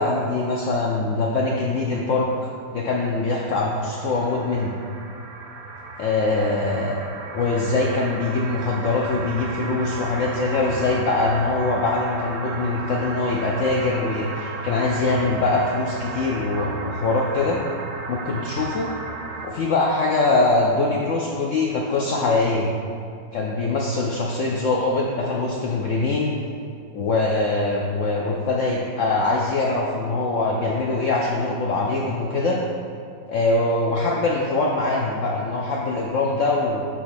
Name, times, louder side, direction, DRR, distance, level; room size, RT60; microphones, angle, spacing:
voice 1, 0.0-4.7 6.0-7.0 7.3-17.6 18.1-18.9 19.4-22.7 23.3-26.4 26.9-32.6 33.3-36.8, left 3 dB, 85° left, -2 dB, 0.6 m, -23 dB
sound 1, 3.5-19.5, right 3 dB, 65° right, 0.8 m, -35 dB
6.0 x 3.7 x 6.0 m, 2.3 s
omnidirectional pair, 2.0 m